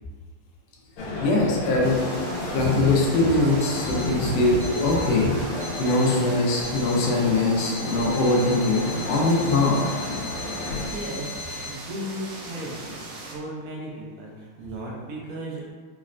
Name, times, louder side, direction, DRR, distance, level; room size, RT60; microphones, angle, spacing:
Male speech man speaking, 1.0-10.9, left 2 dB, 90° left, 1.5 m, -31 dB
voice 1, 1.2-2.0 2.5-5.3 5.8-9.8, left 2 dB, 75° left, -3 dB, 1.0 m, -22 dB
sound 1, 1.8-13.3, right 2 dB, 70° right, 1.1 m, -40 dB
Alarm, 3.6-4.2 4.6-5.2 5.6-6.2 6.6-7.2 7.6-11.7, left 4 dB, 40° right, 0.8 m, -39 dB
voice 2, 10.9-11.3 11.6-13.0 13.2-15.7, right 1 dB, 85° right, -3 dB, 0.8 m, -35 dB
3.9 x 2.1 x 2.4 m, 1.5 s
omnidirectional pair, 2.4 m